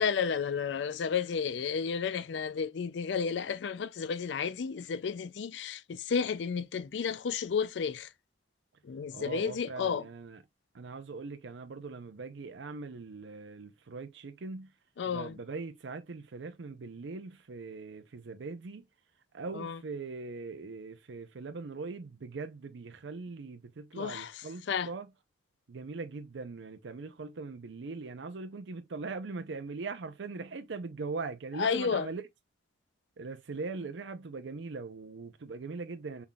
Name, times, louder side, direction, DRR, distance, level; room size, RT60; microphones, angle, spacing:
voice 1, 0.0-8.1 8.8-10.0 15.0-15.3 19.6-19.8 24.0-24.3 24.7-24.9 31.6-32.1, left 6 dB, 75° left, 0.4 m, -32 dB
voice 2, 9.1-10.4 10.7-14.7 15.1-18.8 19.3-25.1 25.7-32.2 33.2-36.2, right 4 dB, 85° right, 0.6 m, -41 dB
5.6 x 3.5 x 2.3 m
head